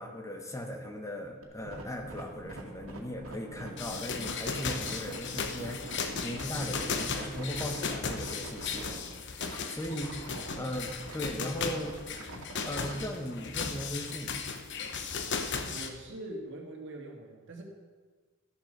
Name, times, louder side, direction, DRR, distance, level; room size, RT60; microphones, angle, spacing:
voice 1, 0.0-5.9 6.2-8.9 9.3-10.2 10.5-12.0 12.6-14.4, equal, 15° left, 3 dB, 1.2 m, -38 dB
sound 1, 1.4-13.1, right 2 dB, 80° right, 2.1 m, -45 dB
sound 2, 3.8-15.9, left 5 dB, 60° left, 1.0 m, -36 dB
voice 2, 10.3-10.7 15.7-17.6, right 1 dB, 60° right, 1 dB, 2.2 m, -44 dB
13.0 x 7.2 x 6.7 m, 1.4 s
head